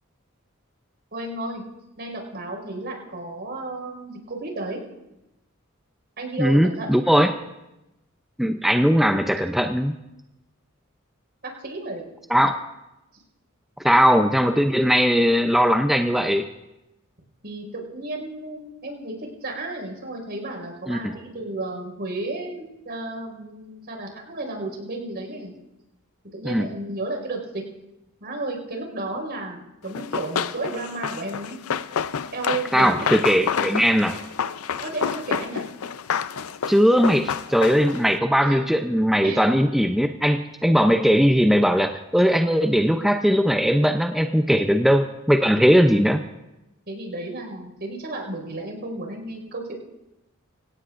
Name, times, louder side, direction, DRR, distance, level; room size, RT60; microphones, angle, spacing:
voice 1, 1.1-1.6 2.0-4.8 6.2-7.2 11.4-12.0 17.4-25.5 26.3-27.6 28.2-31.6 32.3-33.4 34.8-35.6 38.4-38.6 39.2-39.4 44.6-44.8 46.9-49.8, right 2 dB, 55° right, 2 dB, 5.0 m, -33 dB
voice 2, 6.4-7.3 8.4-9.9 12.3-12.6 13.8-16.5 20.9-21.1 26.5-26.7 32.7-34.2 36.7-46.2, equal, ahead, 5 dB, 0.5 m, -19 dB
Run, 29.9-38.1, left 7 dB, 85° left, 0.5 m, -29 dB
25.0 x 17.5 x 2.5 m, 0.93 s
head